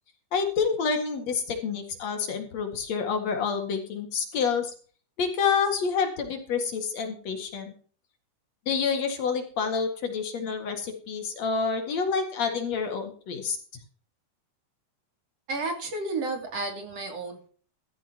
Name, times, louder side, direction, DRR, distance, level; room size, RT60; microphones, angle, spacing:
voice 1, 0.3-4.7 5.2-7.7 8.7-13.6, left 5 dB, 60° left, 5 dB, 3.0 m, -28 dB
voice 2, 15.5-17.5, right 3 dB, 55° right, 4 dB, 3.6 m, -32 dB
14.0 x 14.0 x 2.9 m, 0.43 s
omnidirectional pair, 3.6 m